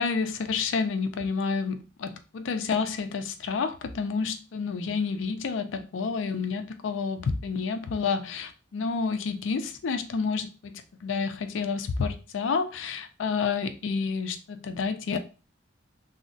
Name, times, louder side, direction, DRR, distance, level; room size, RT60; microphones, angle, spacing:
voice 1, 0.0-15.2, left 5 dB, 80° left, 0.4 m, -29 dB
3.8 x 2.0 x 2.4 m
head